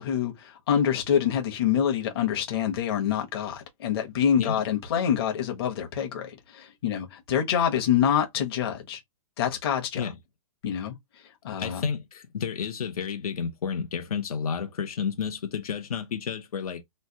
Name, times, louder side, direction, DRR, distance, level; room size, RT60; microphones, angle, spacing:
voice 1, 0.0-9.0 9.4-10.1 10.6-11.0 11.4-11.8, left 9 dB, 40° left, 0.9 m, -26 dB
voice 2, 11.6-16.8, left 6 dB, 85° left, 0.8 m, -31 dB
3.1 x 2.2 x 2.7 m
hypercardioid pair, 165°, 19 cm